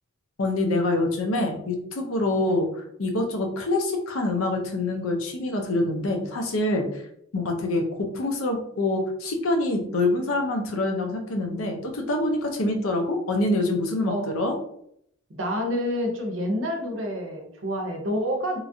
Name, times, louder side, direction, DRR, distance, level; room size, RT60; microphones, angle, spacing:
voice 1, 0.4-6.9 7.3-14.6, left 2 dB, 85° left, 4 dB, 0.6 m, -25 dB
voice 2, 15.3-18.6, equal, 65° right, 2 dB, 0.7 m, -28 dB
3.0 x 2.4 x 2.6 m, 0.70 s
head